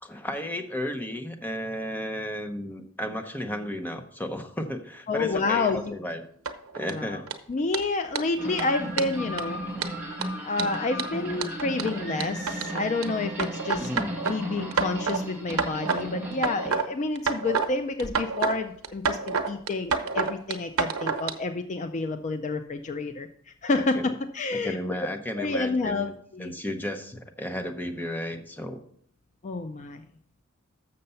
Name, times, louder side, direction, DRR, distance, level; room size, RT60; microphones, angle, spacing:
voice 1, 0.0-6.2 6.7-7.3 13.8-14.1 23.7-24.1 24.5-26.1 26.4-28.8, equal, 10° left, 5 dB, 0.7 m, -33 dB
voice 2, 5.1-6.0 6.9-7.2 7.5-9.6 10.4-13.9 14.3-23.3 23.6-24.8 25.4-26.5 29.4-30.0, left 3 dB, 35° left, 8 dB, 0.4 m, -29 dB
sound 1, 6.5-6.9 7.3-7.4 7.7-7.8 8.2-8.3 8.6-8.7 9.0-9.4 9.8-13.0 13.4-14.3 14.7-15.2 15.5-16.0 16.3-16.9 17.2-17.7 18.0-18.5 18.8-21.3, right 5 dB, 85° right, 0.8 m, -28 dB
sound 2, 8.4-16.7, right 1 dB, 10° right, 1.4 m, -35 dB
6.8 x 6.6 x 5.4 m, 0.64 s
head